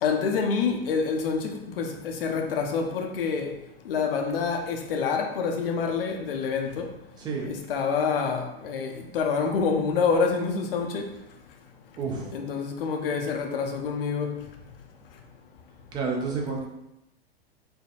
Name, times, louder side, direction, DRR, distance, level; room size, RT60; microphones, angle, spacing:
voice 1, 0.0-3.5 3.9-6.9 7.4-11.1 12.3-14.4, left 5 dB, 60° left, 3 dB, 0.5 m, -27 dB
voice 2, 12.0-12.3 15.9-16.7, right 4 dB, 15° right, 0 dB, 0.4 m, -30 dB
3.3 x 2.0 x 2.4 m, 0.87 s
figure-of-eight pair, 100°, 31 cm